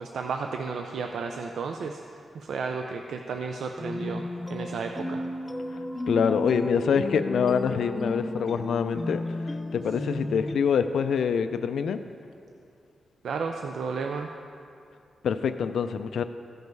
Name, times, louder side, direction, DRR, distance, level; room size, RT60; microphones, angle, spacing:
voice 1, 0.0-4.2 4.5-5.2 13.2-14.3, right 5 dB, 80° right, 4 dB, 0.4 m, -33 dB
sound 1, 3.8-10.6, left 2 dB, 15° left, 0.5 m, -33 dB
voice 2, 6.1-9.2 9.7-12.0 15.2-16.2, left 6 dB, 80° left, 9 dB, 0.3 m, -25 dB
15.0 x 5.3 x 4.6 m, 2.4 s
wide cardioid pair, 125°, 0 cm